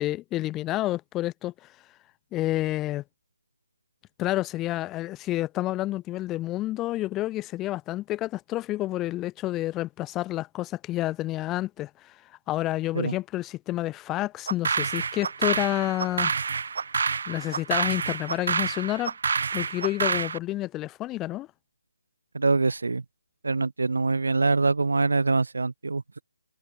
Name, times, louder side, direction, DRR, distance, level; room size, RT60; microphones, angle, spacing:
voice 1, 0.0-1.5 2.3-3.0 4.2-12.1 12.5-16.3 17.3-19.1 19.5-21.5, left 16 dB, 15° left, 2.2 m, -29 dB
sound 1, 14.5-20.4, right 5 dB, 55° right, 2.8 m, -28 dB
voice 2, 22.3-23.0 23.4-26.2, right 3 dB, 70° right, 3.3 m, -24 dB
figure-of-eight pair, 155°, 0 cm